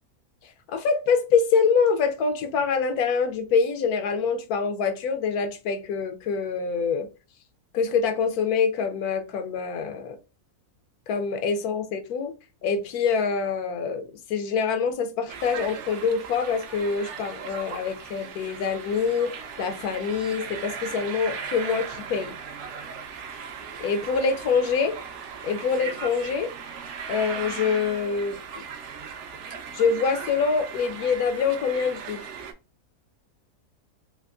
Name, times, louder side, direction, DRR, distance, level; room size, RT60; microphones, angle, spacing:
voice 1, 0.7-7.1 7.7-10.2 11.1-12.3 12.6-19.3 19.6-22.3 23.8-24.9 25.4-26.5 27.1-28.4 29.7-32.2, left 5 dB, 80° left, 1.1 m, -25 dB
sound 1, 15.3-32.5, right 6 dB, 65° right, 0.7 m, -38 dB
3.4 x 2.8 x 2.4 m
omnidirectional pair, 1.6 m